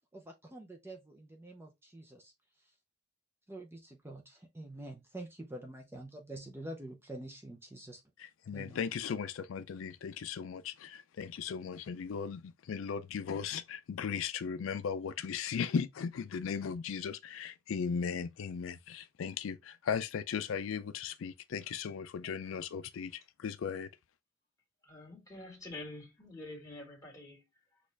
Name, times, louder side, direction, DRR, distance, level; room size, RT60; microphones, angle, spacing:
voice 1, 0.1-2.3 2.6-2.7 3.5-8.0 8.5-8.8, right 1 dB, 10° right, 0.6 m, -47 dB
voice 2, 8.2-23.9, left 6 dB, 75° left, 0.4 m, -37 dB
voice 3, 24.8-27.8, left 2 dB, 15° left, 2.0 m, -47 dB
6.4 x 2.4 x 3.3 m
head